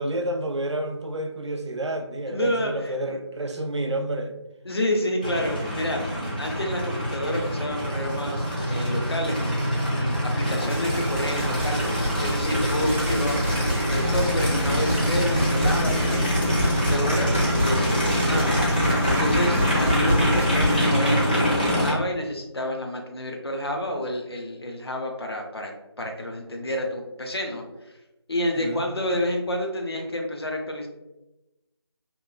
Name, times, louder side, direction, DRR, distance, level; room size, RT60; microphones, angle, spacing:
voice 1, 0.0-4.3 10.5-10.7 28.6-28.8, right 1 dB, 85° right, 0.4 m, -30 dB
voice 2, 2.3-3.2 4.6-6.0 6.4-9.6 10.0-11.9 12.2-25.7 26.0-27.9 28.3-30.9, left 1 dB, 65° left, 0.6 m, -29 dB
Aircraft, 5.2-21.9, equal, 20° left, 0.4 m, -24 dB
sound 1, 10.6-20.8, equal, 30° right, 0.6 m, -29 dB
2.9 x 2.2 x 2.2 m
figure-of-eight pair, 165°, 14 cm